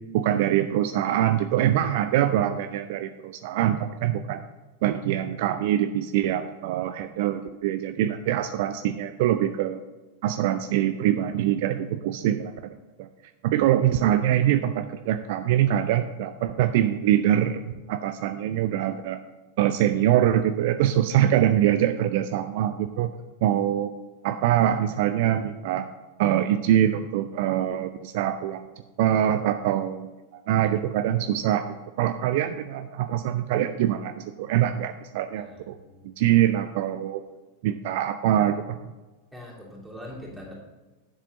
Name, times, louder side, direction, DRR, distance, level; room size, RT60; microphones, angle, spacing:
voice 1, 0.1-4.4 4.8-9.8 10.2-12.5 13.0-13.1 13.4-17.6 17.9-19.2 19.6-23.1 23.4-23.9 24.2-25.9 26.2-28.6 29.0-35.8 36.2-37.2 37.6-38.8, right 11 dB, 50° right, 9 dB, 0.4 m, -24 dB
voice 2, 35.4-36.1 39.3-40.5, left 1 dB, 5° right, -5 dB, 3.2 m, -42 dB
10.5 x 7.5 x 4.1 m, 1.2 s
figure-of-eight pair, 90°, 0 cm